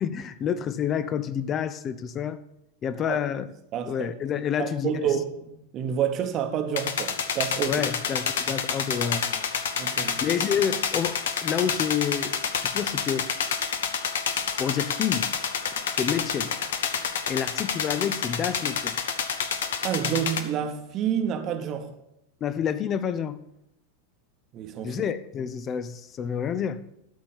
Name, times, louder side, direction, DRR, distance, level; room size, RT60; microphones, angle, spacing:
voice 1, 0.0-2.4 2.8-3.5 3.9-5.0 7.7-9.5 10.2-13.3 14.6-15.3 15.9-16.5 17.3-19.0 22.4-23.4 24.8-26.8, left 8 dB, 30° left, 0.6 m, -28 dB
voice 2, 3.7-4.1 4.6-7.8 9.8-10.2 19.8-21.9 24.5-25.0, right 8 dB, 35° right, 1.1 m, -29 dB
sound 1, 6.8-20.4, left 7 dB, 60° left, 0.8 m, -29 dB
12.5 x 4.3 x 7.0 m
figure-of-eight pair, 90°, 0 cm